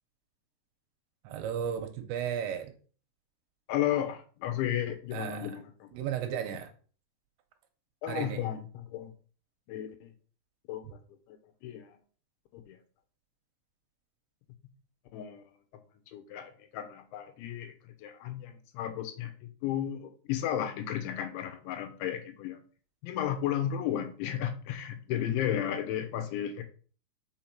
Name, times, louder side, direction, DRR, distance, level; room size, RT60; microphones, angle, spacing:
voice 1, 1.3-2.7 5.1-5.5 5.9-6.7 8.1-8.5, right 9 dB, 80° right, 7 dB, 2.9 m, -34 dB
voice 2, 3.7-5.9 6.3-6.4 8.0-9.1 9.7-10.1 10.7-11.0 11.3-11.4 11.6-11.9 12.5-12.8 15.1-15.4 16.1-19.3 19.6-22.6 23.0-26.6, left 10 dB, 80° left, 8 dB, 3.3 m, -34 dB
6.0 x 5.8 x 5.8 m, 0.41 s
omnidirectional pair, 5.5 m